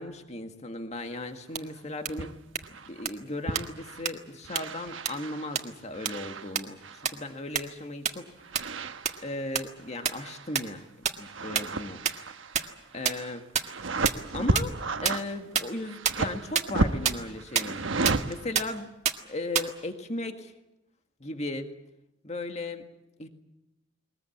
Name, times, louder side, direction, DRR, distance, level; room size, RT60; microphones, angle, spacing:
voice 1, 0.0-2.4 2.9-8.3 9.2-10.8 11.2-12.0 12.9-13.4 14.3-17.8 18.3-18.9 19.2-20.5 21.2-21.7 22.2-22.8 23.2-23.3, left 2 dB, 35° left, 6 dB, 1.9 m, -36 dB
sound 1, 1.6-1.7 2.1-2.2 2.6-2.7 3.1-3.2 3.6-3.7 4.1-4.2 4.6-4.7 5.1-5.2 5.6-5.7 6.1-6.2 6.6-6.7 7.1-7.2 7.6-7.7 8.1-8.2 8.6-8.7 9.1-9.2 9.6-9.7 10.1-10.2 10.6-10.7 11.1-11.2 11.6-11.7 12.1-12.2 12.5-12.6 13.1-13.2 13.6-13.7 14.1-14.2 14.6-14.7 15.1-15.2 15.6-15.7 16.1-16.2 16.6-16.7 17.1-17.2 17.6-17.7 18.1-18.2 18.6-18.7 19.1-19.2 19.6-19.7, right 7 dB, 35° right, 1.7 m, -24 dB
sound 2, 2.1-2.3 2.6-3.1 3.5-4.1 4.4-7.1 8.4-9.4 9.8-10.8 11.0-18.8, right 3 dB, 80° right, 1.2 m, -33 dB
21.5 x 21.0 x 8.6 m, 0.93 s
head